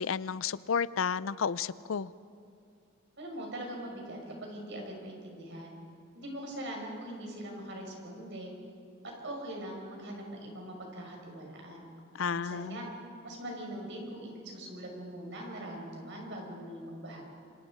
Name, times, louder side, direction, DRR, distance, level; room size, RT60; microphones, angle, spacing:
voice 1, 0.0-2.1 12.1-12.9, left 6 dB, 70° left, 18 dB, 0.5 m, -32 dB
voice 2, 3.2-5.8 6.1-8.5 9.0-11.8 12.3-12.9 13.2-17.2, right 1 dB, 60° right, 0 dB, 6.1 m, -42 dB
27.5 x 25.5 x 5.2 m, 2.5 s
head